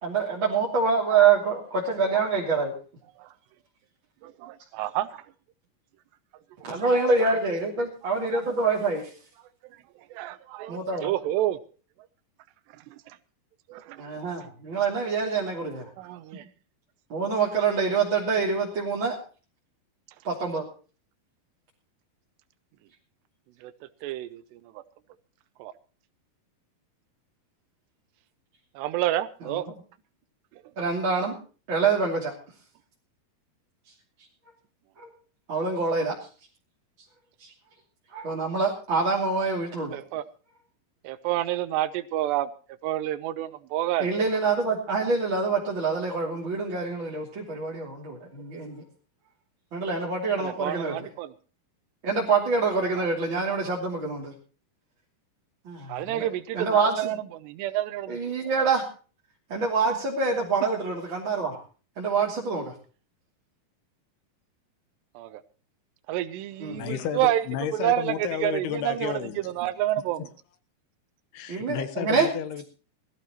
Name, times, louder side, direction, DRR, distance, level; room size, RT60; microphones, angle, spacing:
voice 1, 0.0-2.7 6.6-9.0 10.7-11.1 14.0-15.9 17.1-19.2 20.2-20.6 29.4-29.6 30.8-31.3 31.7-32.3 35.0-35.1 35.5-36.1 37.4-37.5 38.1-40.0 44.0-48.8 49.7-51.1 52.0-54.3 55.6-56.3 56.5-57.1 58.1-58.9 59.5-61.6 62.0-62.7 66.6-66.9 71.5-72.3, right 4 dB, 30° right, 3.1 m, -26 dB
voice 2, 4.2-5.2 8.0-8.1 10.1-11.6 12.9-13.0 13.7-14.0 16.0-16.4 23.6-23.7 24.0-24.6 25.6-25.7 28.8-29.7 39.9-40.2 41.0-42.5 42.8-44.1 50.4-51.3 53.0-53.1 55.9-58.2 65.2-65.4 66.1-67.4 67.7-68.1 68.4-69.1 69.4-70.3, right 14 dB, 85° right, 2.9 m, -29 dB
voice 3, 66.7-69.6 71.3-72.7, left 9 dB, 75° left, 3.2 m, -32 dB
20.5 x 14.5 x 3.0 m
omnidirectional pair, 4.8 m